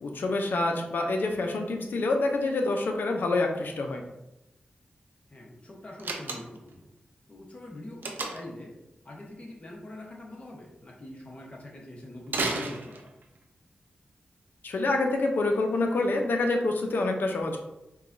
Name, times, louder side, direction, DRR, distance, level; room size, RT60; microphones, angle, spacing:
voice 1, 0.0-4.0 14.6-17.6, left 2 dB, 80° left, 3 dB, 0.5 m, -27 dB
voice 2, 5.3-6.9 7.3-8.7 9.0-13.0, left 1 dB, 40° left, -2 dB, 1.0 m, -44 dB
Slam, 6.0-6.7 8.0-8.6 12.3-13.4, right 3 dB, 80° right, 0.5 m, -32 dB
4.6 x 2.3 x 2.6 m, 0.92 s
wide cardioid pair, 70°, 3 cm